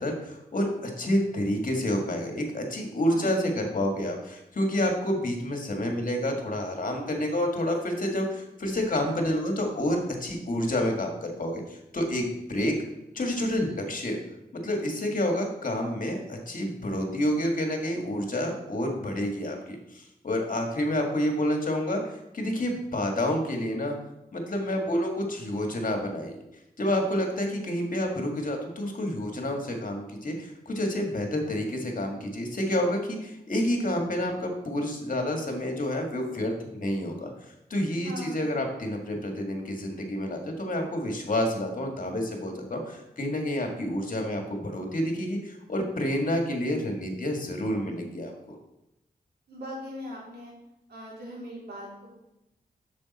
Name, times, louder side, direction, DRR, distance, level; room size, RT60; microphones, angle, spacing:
voice 1, 0.0-12.8 13.1-14.2 14.5-22.0 22.3-24.0 24.3-26.4 26.8-37.3 37.7-48.6, left 1 dB, 55° left, 3 dB, 1.9 m, -29 dB
voice 2, 38.0-38.5 49.5-50.5 50.9-52.1, equal, 80° right, -4 dB, 3.4 m, -40 dB
8.7 x 6.9 x 4.2 m, 0.88 s
cardioid pair, 70°, 16 cm